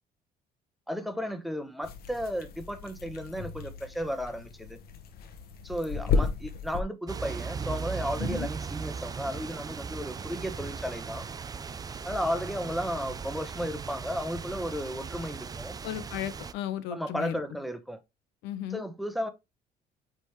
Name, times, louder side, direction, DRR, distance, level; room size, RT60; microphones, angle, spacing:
voice 1, 0.9-4.8 5.6-11.2 12.0-15.8 16.9-18.0 18.7-19.3, equal, ahead, 1.0 m, -34 dB
sound 1, 1.8-6.8, left 5 dB, 65° left, 1.1 m, -33 dB
sound 2, 7.1-16.5, right 5 dB, 20° right, 0.4 m, -37 dB
voice 2, 15.8-17.4 18.4-18.8, left 10 dB, 90° left, 0.8 m, -35 dB
9.0 x 3.5 x 3.1 m
cardioid pair, 110°, 17 cm